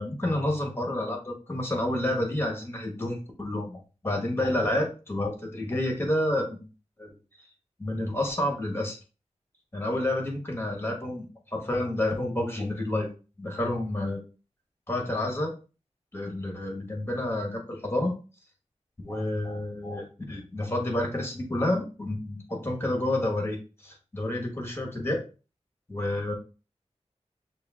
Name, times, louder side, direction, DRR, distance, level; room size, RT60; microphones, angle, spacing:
voice 1, 0.0-6.7 7.0-7.1 7.8-9.0 9.7-13.1 13.4-14.2 14.9-15.5 16.1-18.1 19.0-23.6 23.8-25.2 25.9-26.3, left 1 dB, 20° left, 2 dB, 1.3 m, -29 dB
6.4 x 2.4 x 2.4 m, 0.34 s
wide cardioid pair, 90°, 12 cm